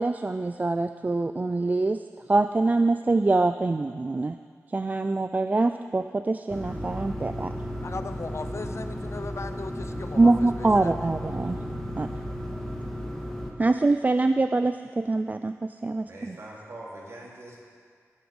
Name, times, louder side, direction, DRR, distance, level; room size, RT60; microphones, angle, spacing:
voice 1, 0.0-2.0 2.3-4.4 4.7-7.5 10.2-11.6 12.0-12.1 13.6-16.4, right 3 dB, 30° right, 9 dB, 0.4 m, -24 dB
sound 1, 6.5-13.5, equal, 10° left, 1.7 m, -34 dB
voice 2, 7.8-11.1, left 4 dB, 55° left, 9 dB, 0.6 m, -38 dB
voice 3, 11.7-12.0 16.0-17.6, right 1 dB, 60° right, -5 dB, 3.4 m, -43 dB
19.0 x 7.9 x 5.3 m, 2.1 s
wide cardioid pair, 80°, 6 cm